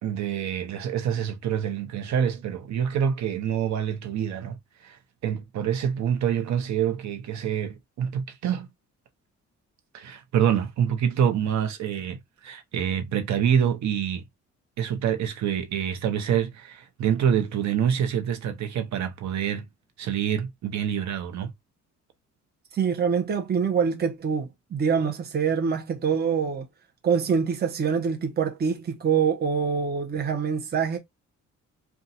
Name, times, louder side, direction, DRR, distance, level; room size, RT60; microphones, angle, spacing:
voice 1, 0.0-4.6 4.8-8.7 9.9-12.2 12.4-14.2 14.8-19.7 20.0-21.5, right 8 dB, 65° right, 0.8 m, -26 dB
voice 2, 22.7-26.7 27.0-31.0, right 6 dB, 35° right, 0.8 m, -25 dB
2.6 x 2.4 x 4.0 m
cardioid pair, 90°, 30 cm